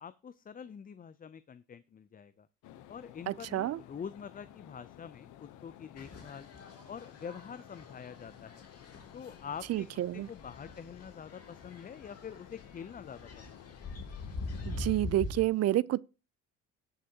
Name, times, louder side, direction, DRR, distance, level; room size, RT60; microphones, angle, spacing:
voice 1, 0.0-2.5 2.9-6.5 6.9-8.6 9.1-9.9 10.1-13.7, left 7 dB, 30° left, 0.5 m, -45 dB
sound 1, 2.6-14.9, left 12 dB, 85° left, 0.8 m, -54 dB
voice 2, 3.3-3.8 9.7-10.3 14.7-16.0, right 14 dB, 55° right, 0.5 m, -29 dB
sound 2, 6.0-15.5, left 2 dB, 55° left, 2.9 m, -44 dB
18.0 x 6.3 x 2.8 m
cardioid pair, 90°, 30 cm